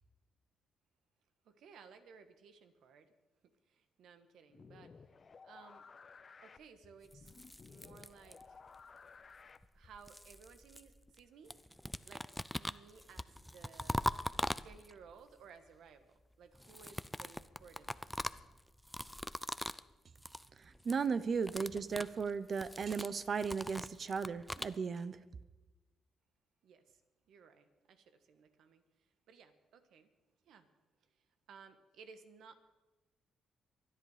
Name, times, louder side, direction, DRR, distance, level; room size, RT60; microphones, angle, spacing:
voice 1, 1.4-3.1 3.7-4.9 5.4-5.8 6.4-7.4 7.7-8.6 9.7-11.6 12.0-12.3 12.6-14.1 14.6-18.2 26.6-27.0 27.3-30.1 30.4-30.7 31.0-32.5, right 6 dB, 75° right, 9 dB, 1.4 m, -59 dB
sound 1, 4.5-10.1, left 5 dB, 40° left, 0.8 m, -57 dB
sound 2, 7.1-8.7 9.6-11.2 11.5-15.1 16.5-19.9 20.2-20.5 20.8-21.1 21.4-24.8, equal, 5° left, 0.4 m, -42 dB
voice 2, 20.6-25.2, right 5 dB, 45° right, 15 dB, 0.8 m, -36 dB
25.0 x 10.5 x 5.0 m, 1.2 s
cardioid pair, 90°, 0 cm